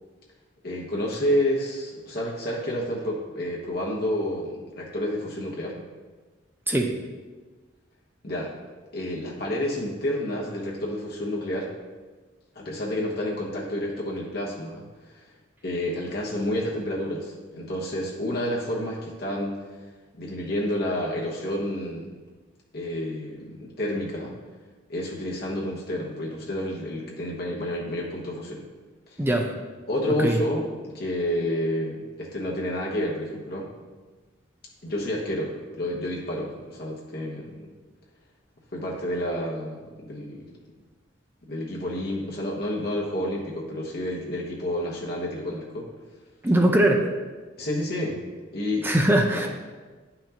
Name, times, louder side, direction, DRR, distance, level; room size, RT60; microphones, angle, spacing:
voice 1, 0.6-5.8 8.2-8.5 8.9-11.7 12.5-15.3 15.6-19.6 20.2-22.1 22.7-24.3 24.9-28.6 29.1-29.2 29.9-33.7 34.8-37.7 38.7-40.5 41.5-45.9 47.6-48.2 48.5-48.9 49.3-49.5, left 1 dB, 50° left, -4 dB, 1.1 m, -29 dB
voice 2, 29.2-29.5 30.2-30.4 46.4-47.1 48.8-49.5, right 1 dB, 10° right, 2 dB, 0.5 m, -21 dB
10.5 x 5.8 x 2.9 m, 1.3 s
head